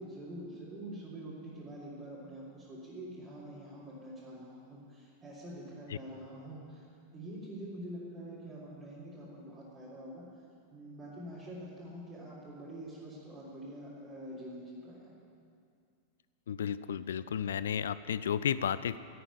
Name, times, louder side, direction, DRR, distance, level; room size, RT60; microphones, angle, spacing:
voice 1, 0.0-6.8 7.1-10.2 10.7-15.1, right 1 dB, 25° right, -9 dB, 3.5 m, -45 dB
voice 2, 16.5-19.0, left 8 dB, 65° left, 16 dB, 0.4 m, -33 dB
11.0 x 8.8 x 9.7 m, 2.4 s
figure-of-eight pair, 90°, 0 cm